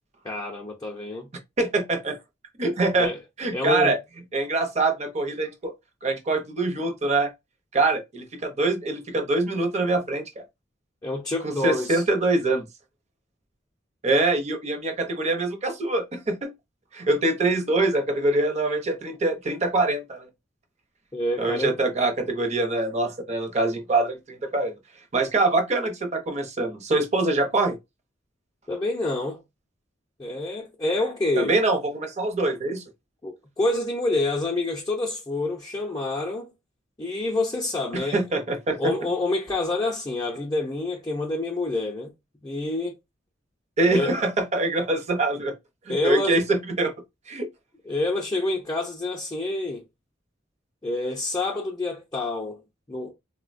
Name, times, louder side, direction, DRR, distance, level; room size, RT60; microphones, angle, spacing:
voice 1, 0.2-1.3 3.0-3.2 3.5-4.0 11.0-12.0 21.1-21.8 28.7-29.4 30.2-31.5 33.2-36.5 37.0-38.2 38.8-42.1 42.4-43.0 43.9-44.2 45.9-46.4 47.9-49.8 50.8-52.6 52.9-53.1, left 2 dB, 20° left, 0.5 m, -27 dB
voice 2, 1.6-2.2 2.6-3.1 3.4-4.0 4.3-5.7 6.0-7.3 7.7-10.2 11.4-12.6 14.0-16.5 16.9-20.3 21.4-24.7 25.1-27.8 31.4-32.8 37.9-38.9 43.8-45.5 45.9-46.9 47.3-47.5, right 2 dB, 35° right, 0.7 m, -24 dB
3.8 x 2.1 x 2.5 m
head